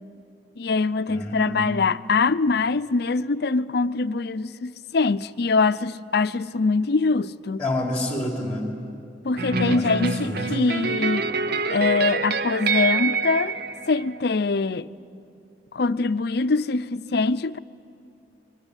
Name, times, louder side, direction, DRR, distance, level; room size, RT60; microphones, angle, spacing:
voice 1, 0.6-7.6 9.2-11.3 11.7-13.6 13.9-14.9 15.7-17.6, left 4 dB, 65° left, 0.6 m, -23 dB
voice 2, 1.1-1.7 7.6-8.7 9.6-10.4, left 1 dB, 5° left, 3.3 m, -29 dB
sound 1, 9.4-14.5, right 4 dB, 60° right, 0.8 m, -26 dB
25.5 x 22.5 x 9.9 m
head